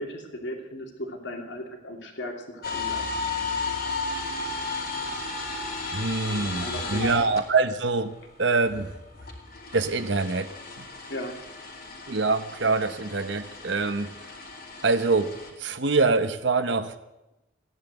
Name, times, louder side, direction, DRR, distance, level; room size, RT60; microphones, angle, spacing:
voice 1, 0.0-3.0 6.3-7.3 11.1-11.4, left 1 dB, 65° left, 2 dB, 2.8 m, -36 dB
sound 1, 2.6-7.9 8.2-15.5, left 3 dB, 50° left, 2.9 m, -34 dB
voice 2, 5.9-8.9 9.7-10.5 12.1-14.1 14.8-16.9, right 3 dB, 65° right, 10 dB, 0.9 m, -25 dB
16.0 x 10.5 x 7.9 m, 0.96 s
head